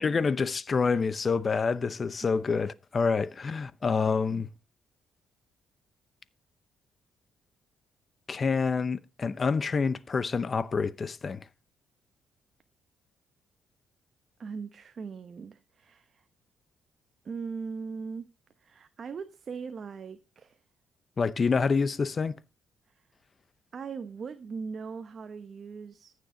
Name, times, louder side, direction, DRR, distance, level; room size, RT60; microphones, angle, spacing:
voice 1, 0.0-4.5 8.3-11.5 21.2-22.3, left 5 dB, 40° left, 0.7 m, -27 dB
voice 2, 14.4-16.2 17.2-18.3 18.6-20.6 22.9-23.1 23.7-26.1, right 5 dB, 45° right, 0.9 m, -40 dB
14.5 x 6.6 x 3.8 m
cardioid pair, 90°, 0 cm